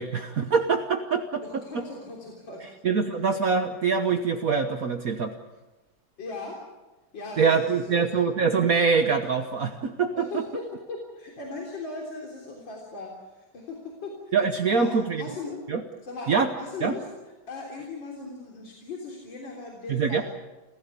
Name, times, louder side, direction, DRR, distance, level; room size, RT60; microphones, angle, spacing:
voice 1, 0.0-1.8 2.6-5.3 7.4-10.4 14.3-15.2 15.7-15.8 16.3-16.5 16.8-17.0 19.9-20.2, right 5 dB, 55° right, 6 dB, 1.5 m, -24 dB
voice 2, 1.4-2.7 6.2-6.6 7.1-8.1 10.2-14.4 14.7-15.6 16.0-17.1 17.5-20.2, left 3 dB, 80° left, -1 dB, 4.3 m, -38 dB
28.0 x 16.0 x 8.3 m, 1.1 s
omnidirectional pair, 2.0 m